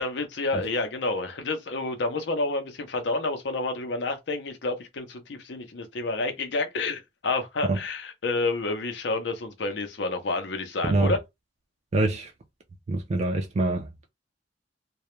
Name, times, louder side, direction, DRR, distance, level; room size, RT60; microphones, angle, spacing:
voice 1, 0.0-11.2, left 3 dB, 70° left, 0.6 m, -29 dB
voice 2, 11.9-12.3 12.9-14.1, right 2 dB, 35° right, 0.3 m, -25 dB
2.2 x 2.0 x 2.9 m
head